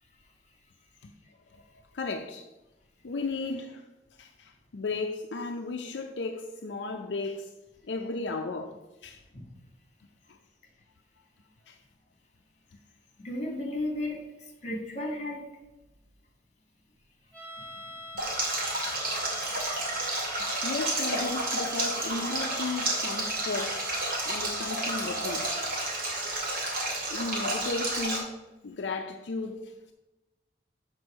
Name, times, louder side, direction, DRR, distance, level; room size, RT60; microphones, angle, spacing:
voice 1, 1.9-2.4 3.0-3.8 4.2-7.5 7.9-9.2 10.3-10.4 11.7-11.8 20.4-23.9 24.3-25.5 26.2-26.3 27.1-28.3 28.6-29.9, left 3 dB, 70° left, 0.5 m, -35 dB
voice 2, 13.2-15.5 17.6-17.7, left 1 dB, 40° left, 1.9 m, -34 dB
sound 1, 17.3-26.0, left 1 dB, 20° right, 2.7 m, -44 dB
Stream, 18.2-28.2, right 2 dB, 50° right, 2.2 m, -31 dB
6.4 x 5.3 x 6.1 m
head